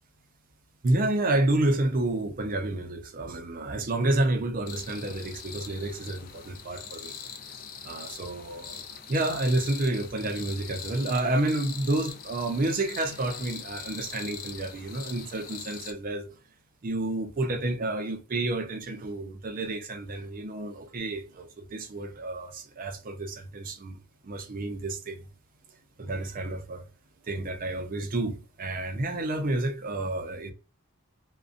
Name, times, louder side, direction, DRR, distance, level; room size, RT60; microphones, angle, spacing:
voice 1, 0.8-7.1 7.8-8.8 9.1-16.3 16.8-24.0 24.2-25.2 26.0-26.9 27.3-30.5, right 2 dB, 40° right, 0.5 m, -29 dB
sound 1, 4.7-15.9, left 7 dB, 40° left, 0.4 m, -42 dB
2.5 x 2.1 x 2.4 m
head